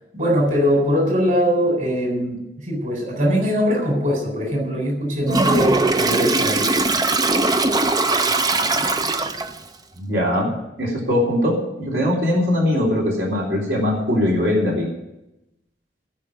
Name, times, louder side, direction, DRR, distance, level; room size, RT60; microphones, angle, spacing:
voice 1, 0.1-6.8, equal, 45° right, 0 dB, 3.9 m, -21 dB
Toilet flush, 5.3-9.6, right 2 dB, 20° right, 0.6 m, -20 dB
voice 2, 9.9-14.9, left 1 dB, 70° right, -3 dB, 3.8 m, -21 dB
16.0 x 5.6 x 9.8 m, 0.91 s
head